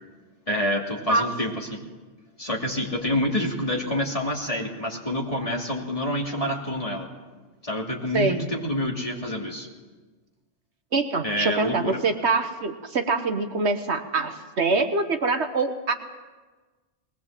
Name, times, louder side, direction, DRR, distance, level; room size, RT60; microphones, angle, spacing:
voice 1, 0.5-1.8 2.4-7.1 7.6-9.7 11.2-12.0, left 1 dB, 25° left, -1 dB, 2.8 m, -27 dB
voice 2, 10.9-15.9, right 3 dB, 60° right, 7 dB, 1.3 m, -24 dB
21.0 x 19.0 x 7.4 m, 1.3 s
omnidirectional pair, 1.3 m